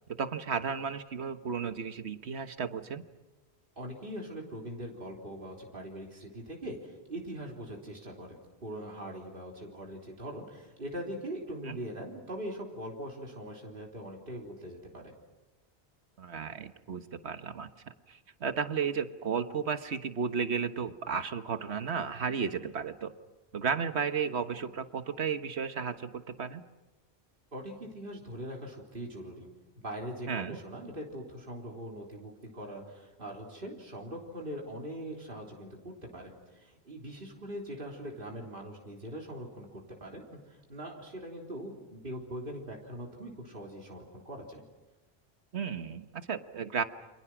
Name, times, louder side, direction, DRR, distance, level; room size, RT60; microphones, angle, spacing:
voice 1, 0.1-3.0 11.6-11.8 16.2-23.1 23.5-26.6 30.3-30.6 45.5-46.8, right 6 dB, 85° right, 10 dB, 1.5 m, -34 dB
voice 2, 3.8-15.1 27.5-29.5 29.8-44.6, equal, 55° right, -1 dB, 3.7 m, -42 dB
29.5 x 27.5 x 6.1 m, 1.1 s
omnidirectional pair, 1.1 m